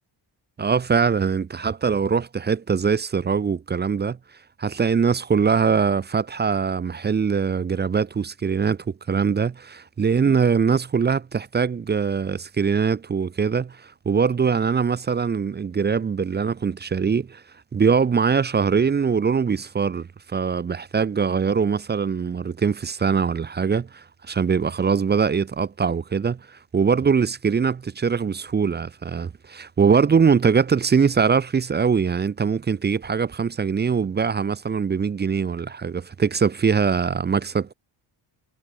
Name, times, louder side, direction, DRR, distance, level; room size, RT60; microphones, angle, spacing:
voice 1, 0.6-4.2 4.6-17.4 17.7-37.7, right 6 dB, 25° right, 0.3 m, -22 dB
cardioid pair, 100°, 48 cm